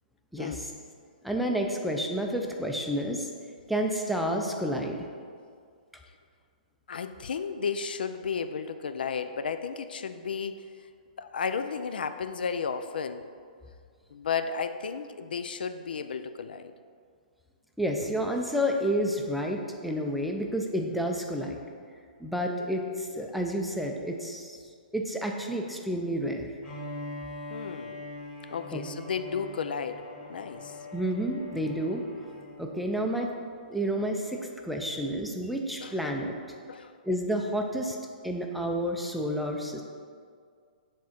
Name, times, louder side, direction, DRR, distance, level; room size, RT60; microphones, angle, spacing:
voice 1, 0.3-0.7 1.2-3.3 3.7-5.0 17.8-21.6 22.2-24.6 24.9-26.5 28.7-28.8 30.9-32.0 32.6-33.3 33.7-36.4 37.0-38.0 38.2-39.8, equal, ahead, 1 dB, 0.4 m, -30 dB
voice 2, 6.9-10.9 11.2-13.3 14.1-16.7 27.5-28.0 28.5-30.8 35.1-35.2 35.8-35.9 36.7-36.9, left 6 dB, 90° left, 10 dB, 0.4 m, -33 dB
Bowed string instrument, 26.6-32.6, left 2 dB, 20° left, 1.4 m, -42 dB
7.5 x 3.6 x 5.8 m, 2.1 s
hypercardioid pair, 160°, 5 cm